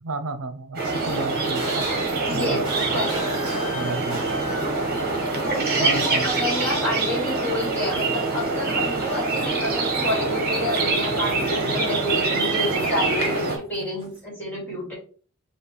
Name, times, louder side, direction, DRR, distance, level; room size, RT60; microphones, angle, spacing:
voice 1, 0.0-1.9 2.3-2.7 3.7-4.2 5.8-6.3, right 2 dB, 85° right, 9 dB, 0.6 m, -32 dB
sound 1, 0.7-13.6, right 3 dB, 45° right, 1.2 m, -25 dB
sound 2, 1.0-5.6 5.9-8.2 8.6-13.1 13.4-14.2, equal, 25° right, 2.0 m, -39 dB
voice 2, 2.2-2.6 2.9-3.2 5.1-14.9, left 1 dB, 10° left, -6 dB, 2.3 m, -29 dB
4.9 x 2.8 x 3.2 m, 0.41 s
head